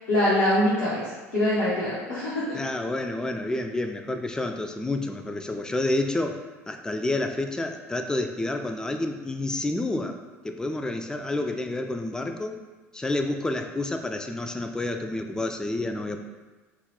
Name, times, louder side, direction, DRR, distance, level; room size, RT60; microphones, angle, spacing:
voice 1, 0.1-2.6, left 1 dB, 80° left, -13 dB, 1.0 m, -24 dB
voice 2, 2.5-10.2 10.4-12.6 12.9-16.2, left 2 dB, 10° left, 5 dB, 0.3 m, -29 dB
3.0 x 2.3 x 3.5 m, 1.2 s
figure-of-eight pair, 65°, 8 cm